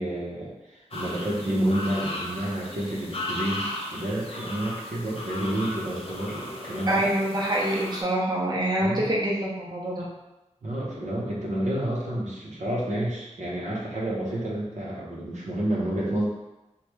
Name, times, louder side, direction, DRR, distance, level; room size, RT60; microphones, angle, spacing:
voice 1, 0.0-7.0 8.8-9.0 10.6-16.3, right 1 dB, 75° right, -6 dB, 0.8 m, -29 dB
sound 1, 0.9-8.0, left 1 dB, 50° left, 0.6 m, -36 dB
voice 2, 6.9-10.0, right 1 dB, 35° right, -5 dB, 0.7 m, -25 dB
3.0 x 2.3 x 3.4 m, 1.0 s
wide cardioid pair, 80°, 12 cm